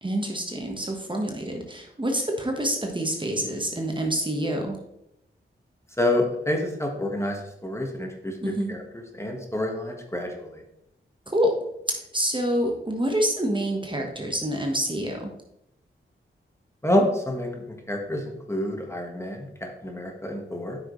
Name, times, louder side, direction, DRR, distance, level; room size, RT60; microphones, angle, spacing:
voice 1, 0.0-4.8 8.4-8.7 11.3-11.5 11.9-15.3, equal, 25° right, 2 dB, 1.4 m, -27 dB
voice 2, 6.0-8.8 9.1-10.6 16.8-20.8, left 1 dB, 10° left, 2 dB, 1.6 m, -28 dB
8.9 x 6.2 x 3.2 m, 0.79 s
cardioid pair, 60°, 21 cm